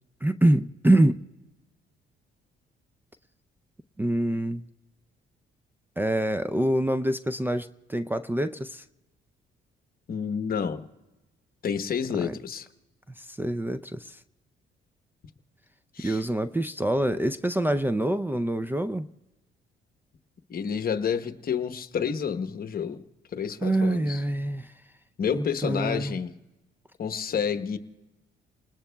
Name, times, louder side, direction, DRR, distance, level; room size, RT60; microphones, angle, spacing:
voice 1, 0.2-1.2 4.0-4.6 6.0-8.8 12.2-12.4 13.2-14.2 16.0-19.1 23.6-24.7 25.3-26.2, right 1 dB, 10° right, 0.4 m, -25 dB
voice 2, 10.1-10.8 11.6-12.7 15.9-16.2 20.5-23.0 23.3-24.2 25.2-26.3 27.0-27.8, left 7 dB, 50° left, 1.0 m, -29 dB
30.0 x 20.0 x 2.2 m
cardioid pair, 90°, 20 cm